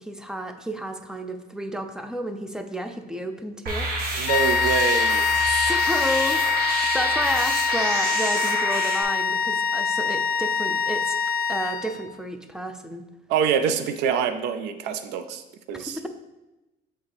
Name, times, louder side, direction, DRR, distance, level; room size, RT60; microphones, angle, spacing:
voice 1, 0.0-3.9 5.5-11.2 11.5-13.0 15.7-16.1, equal, 5° right, 7 dB, 0.5 m, -31 dB
sound 1, 3.7-9.0, right 2 dB, 60° right, 1.2 m, -28 dB
voice 2, 4.1-5.3 13.3-15.4 15.7-16.0, right 7 dB, 85° right, 9 dB, 0.5 m, -25 dB
sound 2, 4.3-12.1, left 6 dB, 60° left, 0.4 m, -24 dB
8.0 x 3.5 x 3.4 m, 1.0 s
cardioid pair, 110°, 17 cm